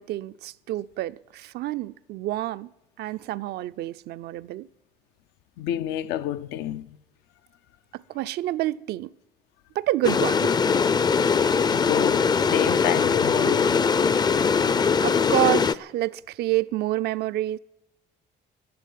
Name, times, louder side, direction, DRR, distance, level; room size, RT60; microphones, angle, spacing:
voice 1, 0.0-2.7 3.0-4.7 7.9-9.1 9.7-10.6 15.0-17.6, right 15 dB, 75° right, 0.5 m, -28 dB
voice 2, 5.6-7.0 11.7-13.8, left 11 dB, 90° left, 0.7 m, -29 dB
sound 1, 10.0-15.7, left 5 dB, 25° left, 0.4 m, -21 dB
12.5 x 10.5 x 9.4 m
cardioid pair, 110°, 17 cm